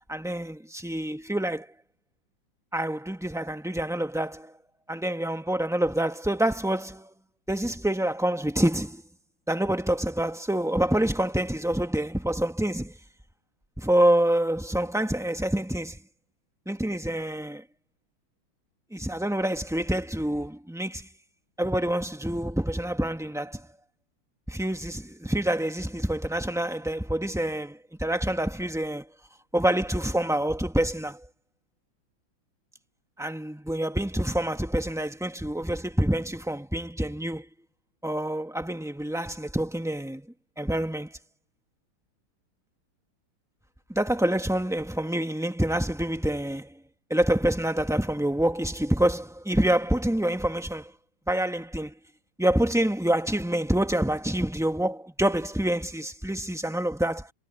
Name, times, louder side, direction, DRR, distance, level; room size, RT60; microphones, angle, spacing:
voice 1, 0.1-1.7 2.7-4.5 4.9-7.1 7.5-9.0 9.5-12.9 13.8-16.0 16.6-17.6 18.9-21.1 21.6-23.7 24.5-29.1 29.5-31.2 33.2-37.5 38.0-40.3 40.6-41.2 43.9-46.7 47.1-50.9 51.3-51.9 52.4-57.3, right 1 dB, ahead, 1.3 m, -27 dB
omnidirectional pair, 2.2 m